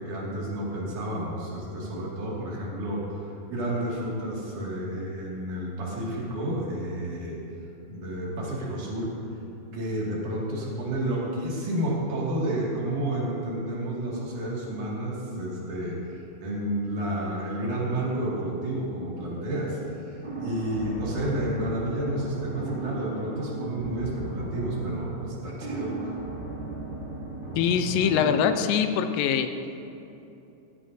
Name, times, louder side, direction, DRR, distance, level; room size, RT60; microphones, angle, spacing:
voice 1, 0.0-7.4 7.9-9.1 9.7-20.1 20.4-26.1, right 1 dB, 65° right, -5 dB, 3.7 m, -31 dB
sound 1, 20.2-28.6, right 3 dB, 20° right, 3.1 m, -35 dB
voice 2, 27.6-29.5, left 8 dB, 85° left, 8 dB, 2.4 m, -23 dB
15.5 x 15.0 x 2.7 m, 2.9 s
omnidirectional pair, 4.0 m